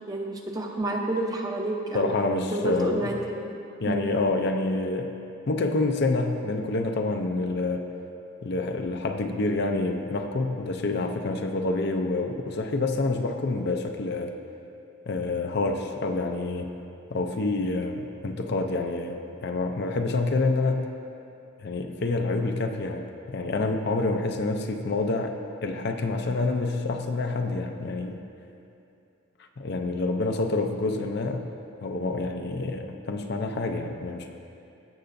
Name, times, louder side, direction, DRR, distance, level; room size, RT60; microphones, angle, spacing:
voice 1, 0.1-2.2 2.5-3.5 3.8-4.0, right 1 dB, 20° right, 0 dB, 0.7 m, -29 dB
voice 2, 1.9-3.0 3.8-5.1 5.5-7.9 8.4-14.3 15.1-16.7 17.1-20.9 21.6-28.2 29.6-31.5 31.8-34.3, left 2 dB, 50° left, 4 dB, 0.5 m, -27 dB
16.5 x 6.7 x 2.6 m, 2.7 s
head